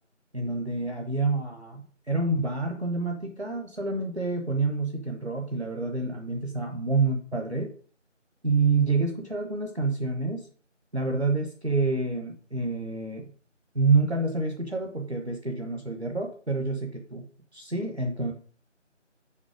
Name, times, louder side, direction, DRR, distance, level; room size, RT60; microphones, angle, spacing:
voice 1, 0.3-7.7 8.4-10.5 10.9-13.3 13.7-17.3 17.5-18.3, right 3 dB, 60° right, 3 dB, 1.3 m, -28 dB
7.3 x 5.3 x 5.1 m, 0.44 s
figure-of-eight pair, 180°, 37 cm